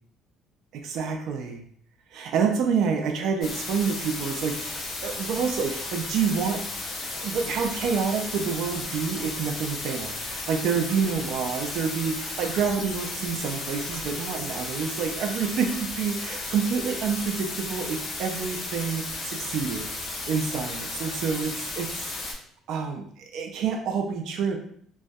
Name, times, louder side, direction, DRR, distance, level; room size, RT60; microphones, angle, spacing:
voice 1, 0.7-1.6 2.1-6.6 7.2-19.9 20.3-22.1 22.7-24.6, right 6 dB, 65° right, 3 dB, 0.3 m, -28 dB
sound 1, 3.4-22.3, left 2 dB, 35° left, 0.6 m, -34 dB
2.6 x 2.1 x 2.2 m, 0.62 s
cardioid pair, 130°, 0 cm